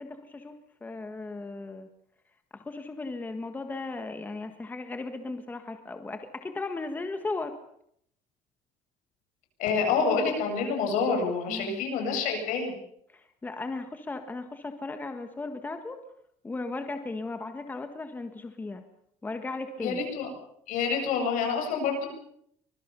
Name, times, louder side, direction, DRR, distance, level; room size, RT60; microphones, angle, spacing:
voice 1, 0.0-1.9 2.5-7.5 11.5-11.8 13.1-16.0 16.4-18.8 19.2-20.0, left 3 dB, 15° left, 7 dB, 1.6 m, -36 dB
voice 2, 9.6-12.8 19.8-20.3 20.7-22.1, left 5 dB, 75° left, 3 dB, 8.0 m, -27 dB
24.5 x 22.0 x 6.9 m, 0.71 s
cardioid pair, 160°, 13 cm